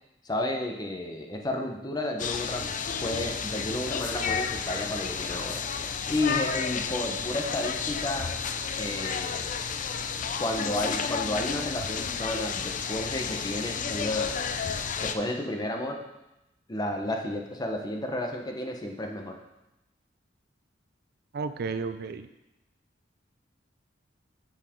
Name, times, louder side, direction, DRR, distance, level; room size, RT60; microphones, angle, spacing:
voice 1, 0.2-2.7 3.0-5.6 6.1-8.3 8.7-9.5 10.4-14.4 15.0-16.0 16.7-19.4, left 1 dB, 20° left, 2 dB, 0.9 m, -32 dB
sound 1, 2.2-15.2, left 6 dB, 45° left, 0.4 m, -31 dB
voice 2, 21.3-22.3, right 4 dB, 55° right, 10 dB, 0.4 m, -32 dB
7.4 x 7.1 x 3.7 m, 0.93 s
head